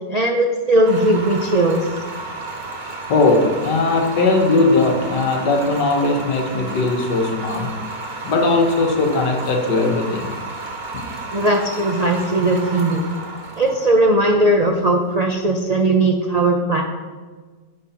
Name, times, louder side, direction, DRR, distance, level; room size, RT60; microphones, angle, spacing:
voice 1, 0.1-1.9 11.3-13.1 13.6-16.8, right 1 dB, 80° right, 2 dB, 0.3 m, -18 dB
sound 1, 0.8-15.8, right 2 dB, 35° right, 1.0 m, -32 dB
voice 2, 3.1-7.7 8.2-10.3 10.9-11.1, left 3 dB, 75° left, 3 dB, 1.7 m, -19 dB
9.9 x 4.6 x 5.7 m, 1.4 s
omnidirectional pair, 1.8 m